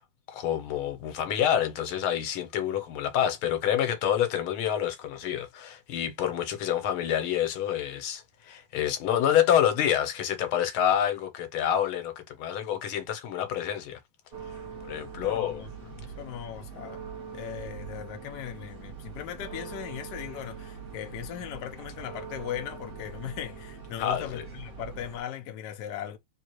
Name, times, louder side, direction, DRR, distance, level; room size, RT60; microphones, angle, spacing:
voice 1, 0.3-14.0 14.8-15.6 24.0-24.4, left 10 dB, 85° left, 1.7 m, -27 dB
sound 1, 14.3-25.2, right 5 dB, 50° right, 0.7 m, -42 dB
voice 2, 15.1-17.0 17.3-26.2, left 10 dB, 65° left, 1.1 m, -38 dB
3.6 x 3.2 x 2.9 m
omnidirectional pair, 2.3 m